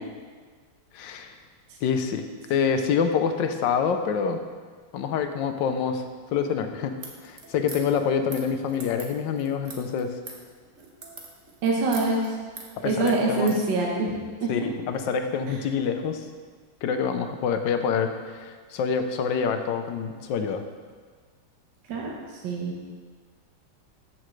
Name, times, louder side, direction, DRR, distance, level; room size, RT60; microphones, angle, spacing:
voice 1, 0.9-1.4 1.8-2.2 2.5-4.4 4.9-6.9 7.2-10.2 12.8-13.5 14.5-16.2 16.8-20.6, left 6 dB, 70° left, 7 dB, 1.3 m, -26 dB
sound 1, 7.0-13.6, right 3 dB, 45° right, 1.2 m, -43 dB
voice 2, 11.6-12.2 12.8-14.1 14.4-14.5 21.9-22.1 22.4-22.8, right 3 dB, 65° right, -2 dB, 1.7 m, -24 dB
14.0 x 6.1 x 3.2 m, 1.6 s
omnidirectional pair, 2.2 m